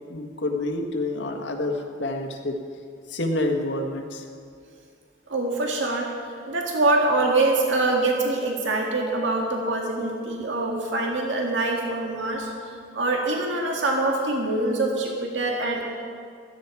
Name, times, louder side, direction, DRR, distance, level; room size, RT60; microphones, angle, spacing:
voice 1, 0.1-2.6 3.1-4.2, left 2 dB, 70° left, 3 dB, 1.6 m, -28 dB
voice 2, 5.3-6.1 6.5-12.5 12.9-15.8, right 2 dB, 90° right, 0 dB, 2.0 m, -24 dB
16.0 x 13.5 x 4.7 m, 2.2 s
head